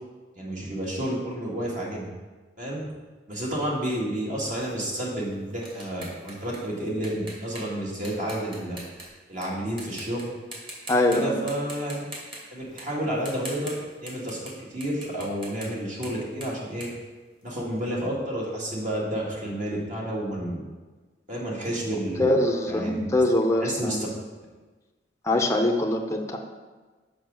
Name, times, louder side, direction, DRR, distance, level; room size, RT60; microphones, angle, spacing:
voice 1, 0.3-2.1 2.6-2.9 3.3-8.8 9.3-10.3 11.1-12.0 12.5-14.4 14.7-16.9 17.4-20.6 21.3-22.4 22.7-23.1 23.6-24.0, right 1 dB, 45° right, -4 dB, 1.8 m, -30 dB
sound 1, 4.6-9.4 9.8-10.2 10.5-11.2 11.5-14.5 14.8-17.8, right 1 dB, 30° right, 1.9 m, -43 dB
voice 2, 10.9-11.5 22.2-24.0 25.2-26.4, left 1 dB, 15° left, 2 dB, 0.6 m, -23 dB
6.3 x 5.1 x 6.2 m, 1.3 s
head